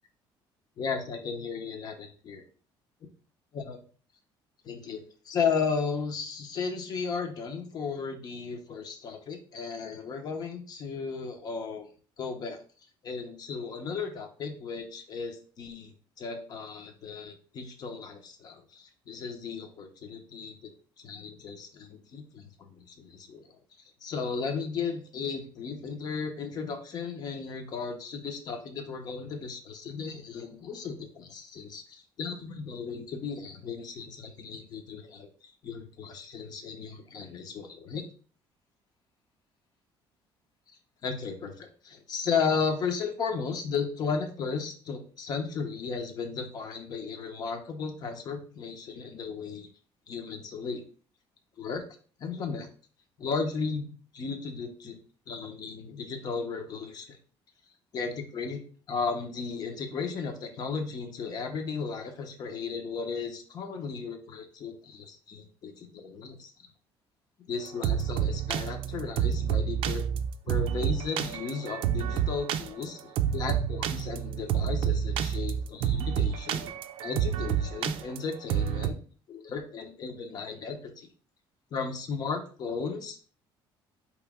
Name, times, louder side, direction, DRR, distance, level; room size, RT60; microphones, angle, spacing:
voice 1, 0.8-2.4 3.5-3.8 4.6-11.9 12.2-12.6 13.0-20.7 21.0-23.4 24.0-38.1 41.0-49.7 50.1-50.8 51.6-51.8 52.2-52.7 53.2-53.9 54.1-55.0 55.3-57.2 57.9-58.6 58.9-66.5 67.5-70.1 70.5-76.7 77.0-78.9 79.3-81.1 81.7-83.3, left 5 dB, 45° left, 5 dB, 0.8 m, -35 dB
sound 1, 67.7-78.9, right 9 dB, 70° right, 0.4 m, -29 dB
4.6 x 3.1 x 3.5 m, 0.41 s
cardioid pair, 150°, 9 cm